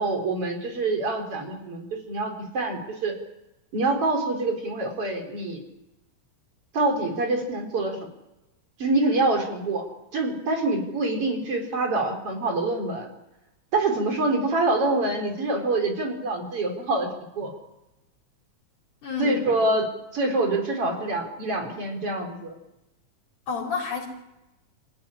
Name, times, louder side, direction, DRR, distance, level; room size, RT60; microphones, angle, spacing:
voice 1, 0.0-3.2 3.7-5.6 6.7-8.0 8.8-9.8 10.1-13.1 13.7-17.1 17.4-17.5 19.2-19.8 20.1-22.6, right 2 dB, 45° right, 3 dB, 4.9 m, -25 dB
voice 2, 19.0-19.5 23.5-24.1, left 5 dB, 65° left, -3 dB, 5.9 m, -29 dB
27.0 x 16.0 x 10.0 m, 0.95 s
omnidirectional pair, 3.7 m